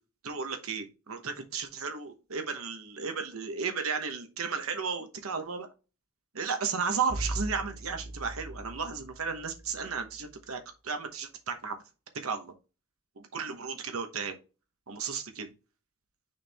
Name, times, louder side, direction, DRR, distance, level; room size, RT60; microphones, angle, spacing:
voice 1, 0.2-5.7 6.3-11.8 12.1-12.5 13.2-14.4 14.9-15.5, right 5 dB, 85° right, 6 dB, 1.0 m, -34 dB
Bowed string instrument, 7.1-10.2, right 1 dB, 65° right, 1.5 m, -39 dB
6.4 x 4.4 x 3.4 m, 0.31 s
head